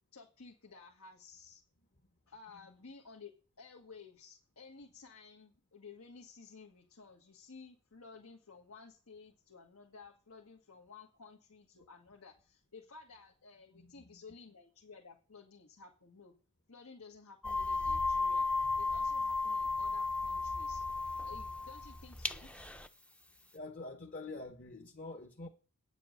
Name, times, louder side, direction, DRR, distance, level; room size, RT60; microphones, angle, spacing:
voice 1, 0.1-1.6 2.3-16.3 16.7-20.8 21.2-22.5, left 4 dB, 85° left, 1.6 m, -55 dB
voice 2, 13.7-14.2 23.5-25.5, left 2 dB, 40° left, 1.0 m, -46 dB
sound 1, 17.4-22.9, left 3 dB, 5° left, 0.5 m, -34 dB
9.5 x 7.1 x 6.6 m
head